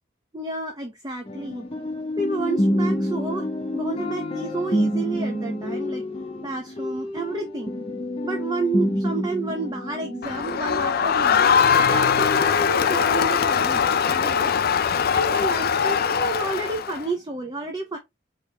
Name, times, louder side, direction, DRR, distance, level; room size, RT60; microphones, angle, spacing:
voice 1, 0.3-1.7 2.2-3.5 3.7-6.0 6.4-7.7 8.2-11.6 11.9-14.6 15.1-18.0, right 2 dB, 20° right, 0.8 m, -30 dB
sound 1, 1.3-11.3 11.6-12.4, equal, 30° left, 0.9 m, -28 dB
Crowd, 10.2-17.0, left 7 dB, 50° left, 0.4 m, -21 dB
4.6 x 3.2 x 3.4 m
head